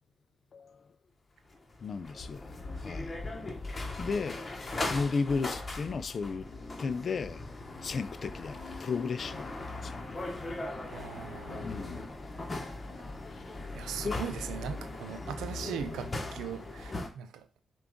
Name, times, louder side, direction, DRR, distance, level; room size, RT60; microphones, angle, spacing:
sound 1, 1.5-17.1, left 2 dB, 35° left, 1.0 m, -39 dB
voice 1, 1.8-2.4 2.8-3.1 4.0-6.5 6.8-7.4 7.8-9.5 9.8-10.2 11.6-12.1 14.0-14.2, left 4 dB, 55° left, 0.4 m, -34 dB
voice 2, 10.9-11.7 13.7-17.5, right 8 dB, 80° right, 0.5 m, -40 dB
5.8 x 2.4 x 3.6 m
supercardioid pair, 45°, 0 cm